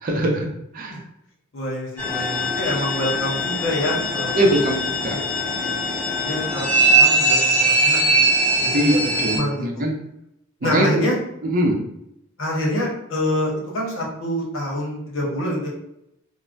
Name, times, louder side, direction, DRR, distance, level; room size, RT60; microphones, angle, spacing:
voice 1, 0.0-0.5 0.7-1.0 4.3-5.2 8.7-9.9 10.6-11.1 11.4-11.8, right 1 dB, 45° right, 1 dB, 0.5 m, -21 dB
voice 2, 1.5-4.4 5.6-5.8 6.2-8.3 8.6-8.7 9.3-9.6 10.6-11.1 12.4-15.7, left 1 dB, 75° left, -2 dB, 0.9 m, -26 dB
sound 1, 2.0-9.4, right 2 dB, 5° left, 1.2 m, -21 dB
3.2 x 2.1 x 2.5 m, 0.80 s
head